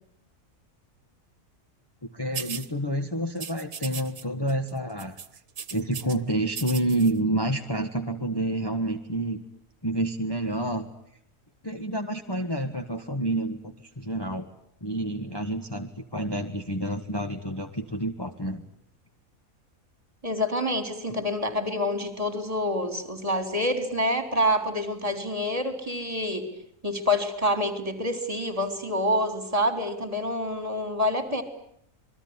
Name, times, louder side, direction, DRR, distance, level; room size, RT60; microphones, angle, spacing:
voice 1, 2.0-5.2 5.7-9.4 9.8-10.9 11.6-14.5 14.8-18.6, right 1 dB, 15° left, 4 dB, 1.5 m, -29 dB
sound 1, 2.3-2.7 3.4-4.2 4.5-4.7 5.0-6.2 6.5-7.1, right 7 dB, 70° right, 1.8 m, -37 dB
voice 2, 20.2-26.5 26.8-31.4, left 1 dB, 25° right, 8 dB, 3.9 m, -27 dB
28.0 x 21.5 x 9.7 m, 0.71 s
omnidirectional pair, 1.6 m